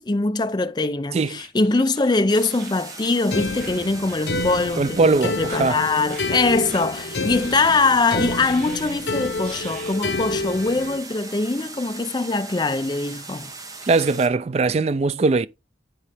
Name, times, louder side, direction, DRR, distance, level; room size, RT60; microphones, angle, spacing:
voice 1, 0.0-13.5, left 3 dB, 25° left, 0.5 m, -22 dB
sound 1, 1.2-4.2 4.5-4.8 5.1-5.6 6.1-6.3 6.7-6.9 7.3-7.9 8.3-9.0 9.4-10.0, right 3 dB, 60° right, 3.0 m, -42 dB
sound 2, 2.3-14.3, right 3 dB, 20° right, 0.8 m, -39 dB
sound 3, 3.3-11.0, left 2 dB, 70° left, 0.9 m, -29 dB
voice 2, 4.8-5.8 13.9-15.5, right 3 dB, 35° right, 0.3 m, -20 dB
10.0 x 4.0 x 3.4 m
head